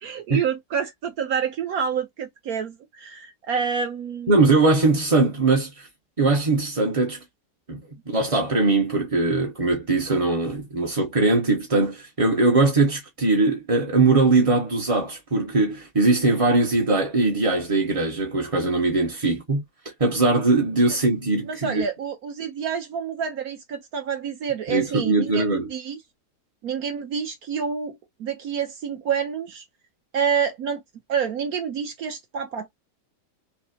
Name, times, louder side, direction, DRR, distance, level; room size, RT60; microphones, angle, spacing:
voice 1, 0.0-4.4 21.4-26.0 26.6-29.6 30.1-30.8 31.1-32.7, right 7 dB, 60° right, 1.2 m, -28 dB
voice 2, 4.3-5.9 6.2-7.2 7.7-7.8 8.1-19.6 20.0-21.8 24.7-25.7, right 3 dB, 30° right, 0.7 m, -21 dB
5.7 x 2.1 x 2.8 m
omnidirectional pair, 1.9 m